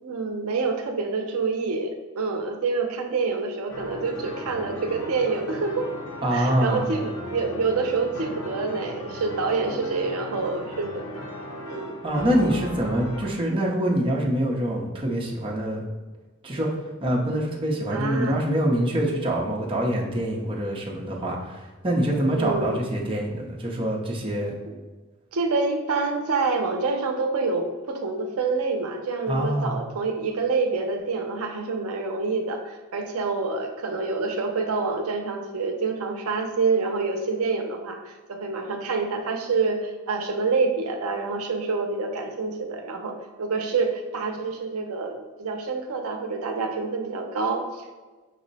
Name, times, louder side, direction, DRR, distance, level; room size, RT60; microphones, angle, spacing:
voice 1, 0.0-5.9 6.3-11.2 11.6-12.0 17.9-18.4 22.4-22.8 24.7-24.8 25.3-47.9, right 4 dB, 80° right, 4 dB, 0.5 m, -27 dB
sound 1, 3.7-13.3, left 1 dB, 85° left, 0.7 m, -37 dB
voice 2, 6.2-6.9 12.0-15.8 16.4-16.7 17.0-24.5 29.3-29.7, right 1 dB, 25° right, -2 dB, 0.6 m, -25 dB
5.3 x 2.1 x 3.9 m, 1.3 s
head